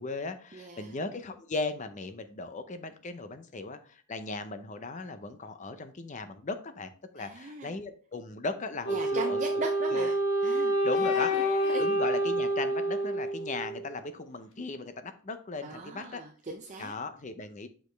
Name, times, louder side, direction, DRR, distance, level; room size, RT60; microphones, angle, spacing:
voice 1, 0.0-9.6 9.9-10.1 10.8-11.3 11.8-16.2 16.8-17.7, left 3 dB, 35° left, 10 dB, 0.6 m, -37 dB
voice 2, 0.5-1.0 7.2-7.8 8.9-10.1 10.4-10.7 11.0-11.3 11.6-11.9 15.6-16.9, right 2 dB, 35° right, 3 dB, 0.5 m, -39 dB
Wind instrument woodwind instrument, 8.8-13.9, equal, 75° left, 1.2 m, -28 dB
6.2 x 5.1 x 3.3 m, 0.43 s
head